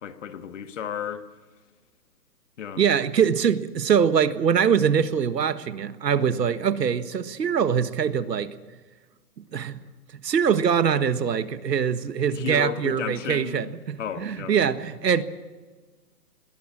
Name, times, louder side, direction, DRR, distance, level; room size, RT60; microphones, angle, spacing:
voice 1, 0.0-1.3 2.6-2.8 12.3-13.7 14.0-14.6, left 8 dB, 45° left, 1.7 m, -33 dB
voice 2, 2.8-8.5 9.5-9.8 10.2-15.2, right 7 dB, 80° right, 1.6 m, -23 dB
22.0 x 18.5 x 7.5 m
hypercardioid pair, 165°, 49 cm